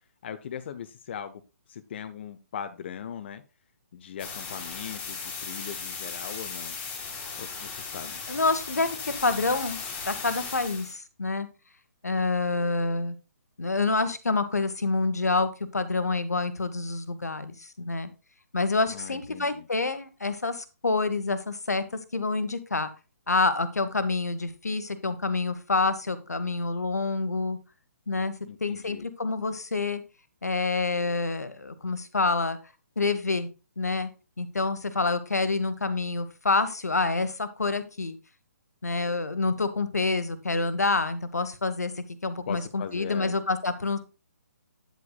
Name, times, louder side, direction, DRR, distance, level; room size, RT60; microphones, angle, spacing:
voice 1, 0.2-1.4 1.7-3.4 3.9-6.8 7.4-8.2 18.9-19.7 28.4-29.1 42.5-43.3, left 8 dB, 40° left, 10 dB, 0.6 m, -39 dB
sound 1, 4.2-10.9, left 5 dB, 15° left, 1.9 m, -37 dB
voice 2, 8.3-9.8 10.1-11.5 12.0-13.1 13.6-18.1 18.5-21.8 22.1-22.9 23.3-27.6 28.1-28.4 28.6-30.0 30.4-32.6 33.0-33.5 33.8-34.1 34.4-38.2 38.8-44.0, left 3 dB, 75° left, 12 dB, 1.1 m, -27 dB
9.1 x 8.2 x 2.3 m, 0.31 s
figure-of-eight pair, 135°, 9 cm